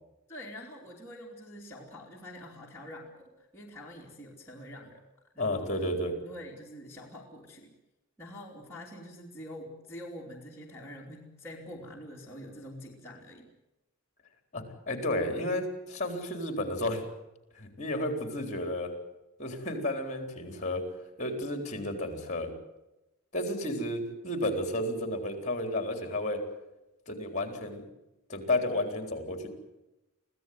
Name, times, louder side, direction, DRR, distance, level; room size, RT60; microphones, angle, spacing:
voice 1, 0.3-5.0 5.3-5.7 6.2-7.7 8.2-13.5, left 1 dB, 10° left, -4 dB, 3.0 m, -46 dB
voice 2, 5.4-6.2 14.5-17.0 17.5-18.9 19.4-20.9 21.2-22.5 23.3-26.4 27.1-27.8 28.3-29.5, left 1 dB, 35° left, 6 dB, 3.9 m, -32 dB
24.5 x 16.0 x 9.5 m, 0.99 s
head